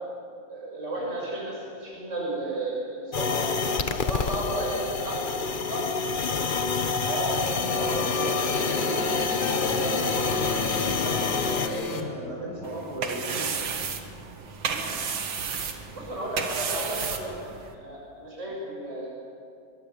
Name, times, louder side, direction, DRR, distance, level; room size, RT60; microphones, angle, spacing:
voice 1, 0.5-3.4 3.8-5.2 5.7-5.9 14.7-14.9 15.9-19.1, right 1 dB, 35° right, -4 dB, 6.4 m, -33 dB
sound 1, 3.1-11.7, left 4 dB, 40° left, 0.7 m, -27 dB
voice 2, 7.0-11.2 11.5-13.5 18.5-18.6, right 1 dB, 60° right, -4 dB, 7.2 m, -34 dB
sound 2, 7.3-12.7, left 4 dB, 80° left, 2.6 m, -35 dB
sound 3, 12.6-17.7, right 6 dB, 80° right, 2.3 m, -32 dB
23.0 x 23.0 x 7.0 m, 2.4 s
omnidirectional pair, 2.1 m